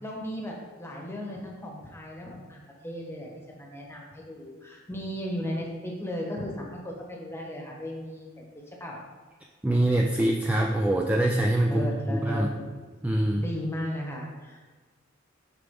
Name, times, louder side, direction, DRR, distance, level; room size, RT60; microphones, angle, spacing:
voice 1, 0.0-8.3 8.8-9.0 11.7-12.7 13.4-14.7, equal, 15° left, -1 dB, 1.1 m, -36 dB
voice 2, 9.6-12.5 13.0-13.4, right 1 dB, 5° right, 1 dB, 0.3 m, -24 dB
6.7 x 4.9 x 3.7 m, 1.4 s
head